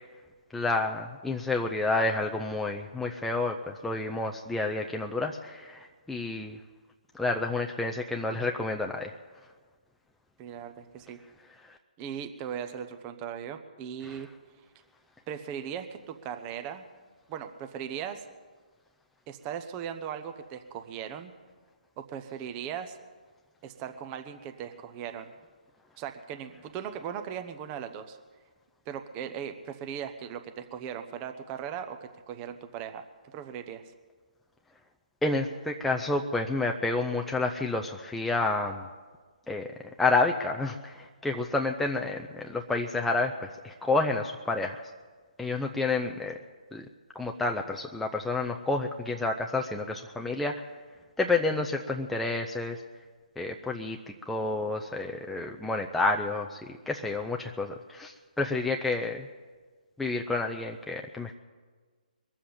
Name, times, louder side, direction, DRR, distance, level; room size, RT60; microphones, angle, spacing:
voice 1, 0.5-6.6 7.1-9.1 14.0-14.2 35.2-38.9 39.5-39.7 40.0-44.8 45.4-46.4 46.7-46.9 47.2-50.5 51.2-52.8 53.4-54.0 54.3-56.6 56.9-59.3 60.0-61.3, left 3 dB, 5° left, 2 dB, 0.5 m, -29 dB
voice 2, 10.4-11.2 12.0-14.3 15.3-16.8 17.3-18.2 19.3-21.3 22.0-23.0 23.6-25.3 26.0-28.2 28.9-33.8, right 8 dB, 25° right, 7 dB, 0.9 m, -38 dB
22.0 x 7.5 x 8.7 m, 1.4 s
hypercardioid pair, 145°, 5 cm